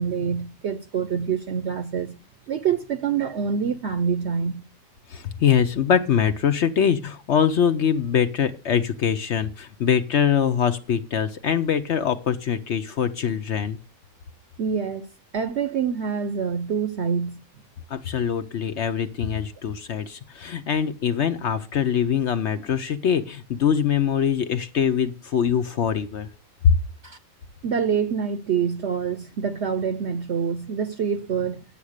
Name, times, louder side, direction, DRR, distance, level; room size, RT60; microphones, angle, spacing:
voice 1, 0.0-2.2 2.5-4.6 14.6-15.1 15.3-17.4 27.0-27.2 27.6-31.6, right 7 dB, 60° right, 0.9 m, -26 dB
voice 2, 5.1-13.8 17.9-26.3 26.6-26.8, left 8 dB, 60° left, 0.9 m, -23 dB
9.3 x 7.2 x 6.5 m
omnidirectional pair, 1.4 m